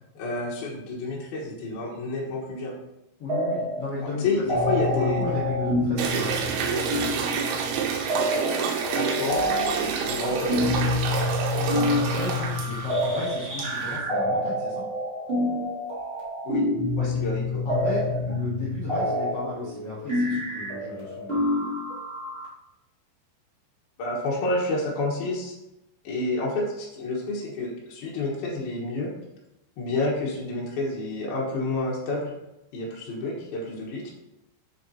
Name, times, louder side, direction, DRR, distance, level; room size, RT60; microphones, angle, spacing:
voice 1, 0.2-2.7 4.0-5.2 9.0-10.7 16.4-16.6 17.0-17.6 24.0-25.6 26.0-29.1 29.8-32.3 32.7-34.1, left 2 dB, 65° left, -4 dB, 2.8 m, -29 dB
voice 2, 3.2-4.4 4.9-6.6 11.3-14.8 17.0-17.1 17.6-21.4, left 2 dB, 85° left, -9 dB, 1.3 m, -35 dB
sound 1, 3.3-3.9 4.2-22.4, left 1 dB, 60° right, 0.6 m, -27 dB
sound 2, 6.0-14.0, right 6 dB, 85° right, 3.0 m, -29 dB
6.9 x 6.8 x 2.8 m, 0.91 s
omnidirectional pair, 5.5 m